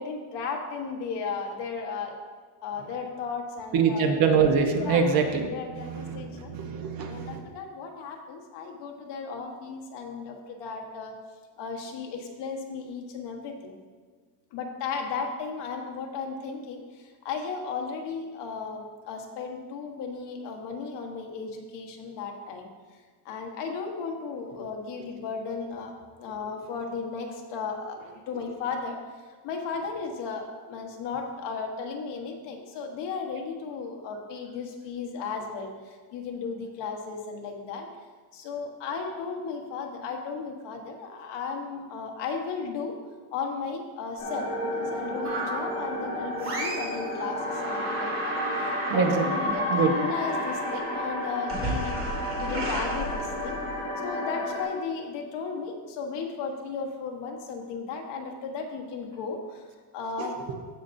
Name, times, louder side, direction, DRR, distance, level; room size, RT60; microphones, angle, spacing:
voice 1, 0.0-2.2 2.6-4.1 4.7-5.1 5.5-6.5 7.0-11.1 11.6-13.7 14.5-22.7 23.2-25.9 26.2-29.0 29.4-37.9 38.3-42.9 43.3-48.4 48.6-51.9 52.3-53.6 54.0-59.6 59.9-60.3, left 5 dB, 65° left, 3 dB, 1.3 m, -35 dB
voice 2, 3.7-7.4 28.3-28.4 48.9-49.9 60.2-60.3, right 5 dB, 50° right, 4 dB, 1.0 m, -25 dB
sound 1, 44.2-54.6, equal, 20° left, 2.7 m, -33 dB
sound 2, 45.2-45.8 46.4-47.0 47.3-53.8, equal, 30° right, 1.9 m, -32 dB
15.5 x 5.7 x 2.6 m, 1.5 s
cardioid pair, 175°, 45 cm